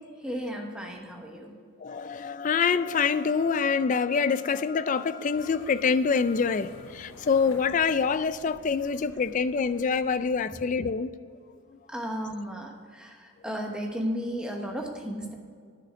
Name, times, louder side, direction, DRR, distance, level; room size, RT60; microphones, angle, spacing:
voice 1, 0.2-1.5 11.9-15.3, equal, 5° right, 1 dB, 1.0 m, -34 dB
voice 2, 1.8-11.1, left 5 dB, 35° left, 13 dB, 0.3 m, -26 dB
sound 1, 5.3-10.5, left 2 dB, 80° left, 1.0 m, -50 dB
9.9 x 6.5 x 6.4 m, 2.1 s
head